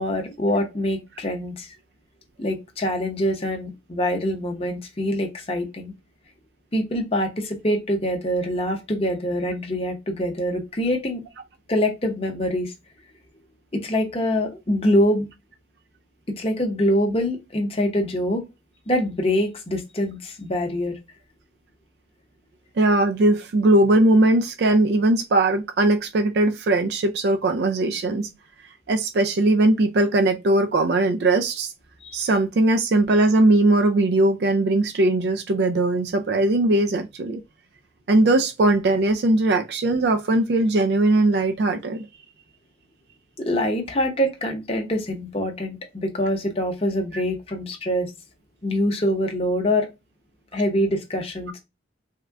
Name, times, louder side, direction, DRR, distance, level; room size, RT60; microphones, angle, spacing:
voice 1, 0.0-1.7 2.4-5.9 6.7-11.2 11.7-12.7 13.7-15.3 16.3-18.4 18.9-21.0 32.0-32.2 43.4-48.1 48.6-49.9 50.5-51.6, equal, 30° left, 0.7 m, -24 dB
voice 2, 22.8-28.3 28.9-31.7 32.1-37.4 38.1-42.1 47.1-47.2, right 2 dB, 60° right, 0.4 m, -20 dB
3.6 x 2.1 x 3.3 m
head